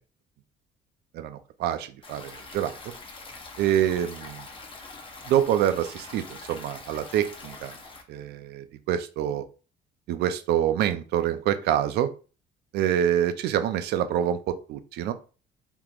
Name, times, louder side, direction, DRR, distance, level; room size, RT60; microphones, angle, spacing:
voice 1, 1.1-2.8 3.6-4.5 5.3-7.8 8.1-9.4 10.1-12.1 12.7-15.1, right 10 dB, 75° right, 10 dB, 0.5 m, -26 dB
Stream, 2.0-8.0, left 3 dB, 30° left, 0.9 m, -44 dB
3.6 x 2.9 x 2.4 m, 0.35 s
cardioid pair, 110°, 17 cm